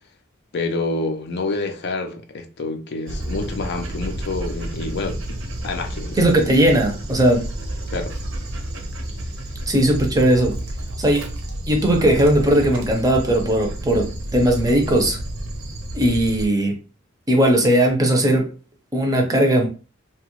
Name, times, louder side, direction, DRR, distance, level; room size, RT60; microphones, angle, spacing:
voice 1, 0.5-5.4 5.6-6.2 7.9-8.1, left 3 dB, 55° left, 0.5 m, -27 dB
Dog, 3.1-16.4, right 1 dB, 75° right, 0.7 m, -30 dB
voice 2, 6.2-7.5 9.7-10.6 11.0-11.3 11.7-15.2 15.9-16.8 17.3-18.5 18.9-19.7, right 1 dB, 20° right, 0.5 m, -18 dB
2.8 x 2.2 x 3.0 m
head